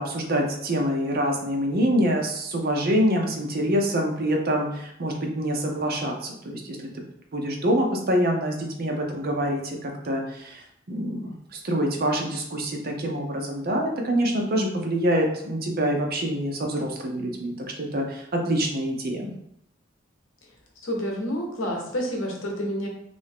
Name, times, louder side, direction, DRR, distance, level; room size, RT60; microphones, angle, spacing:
voice 1, 0.0-6.9 7.3-10.6 10.9-19.3, equal, 50° right, 1 dB, 0.6 m, -26 dB
voice 2, 20.8-22.9, equal, 75° left, 0 dB, 0.9 m, -29 dB
3.2 x 2.6 x 3.4 m, 0.74 s
head